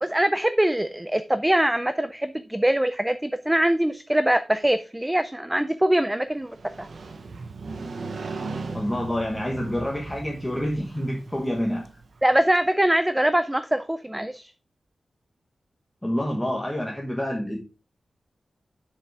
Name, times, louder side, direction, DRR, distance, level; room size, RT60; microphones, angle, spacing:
voice 1, 0.0-6.9 12.2-14.5, right 1 dB, 10° right, 11 dB, 0.4 m, -23 dB
Motorcycle, 6.4-12.3, right 4 dB, 55° right, 0.9 m, -37 dB
voice 2, 8.7-11.9 16.0-17.6, equal, 10° left, -2 dB, 1.4 m, -27 dB
7.7 x 6.5 x 3.5 m, 0.31 s
wide cardioid pair, 175°, 0 cm